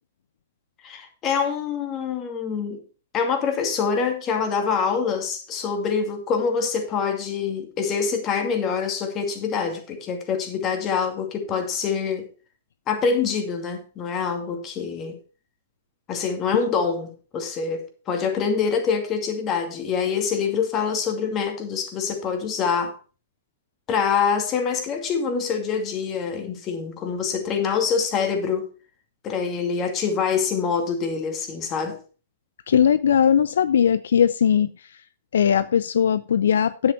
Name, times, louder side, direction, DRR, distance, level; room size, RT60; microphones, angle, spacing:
voice 1, 0.8-2.8 3.1-12.3 12.9-15.2 16.1-23.0 23.9-28.7 29.2-32.0, left 6 dB, 30° left, 2.5 m, -25 dB
voice 2, 32.7-34.7 35.3-36.9, left 8 dB, 70° left, 0.4 m, -19 dB
10.0 x 7.8 x 4.3 m
hypercardioid pair, 110°, 0 cm